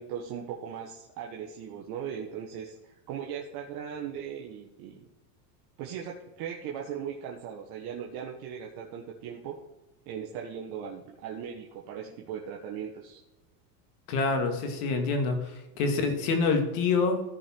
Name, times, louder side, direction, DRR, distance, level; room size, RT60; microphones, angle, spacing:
voice 1, 0.0-5.0 5.8-9.6 10.1-13.2, right 8 dB, 50° right, -1 dB, 1.4 m, -38 dB
voice 2, 14.1-17.2, left 4 dB, 65° left, 5 dB, 2.4 m, -26 dB
14.0 x 5.2 x 4.6 m, 1.0 s
supercardioid pair, 140°, 49 cm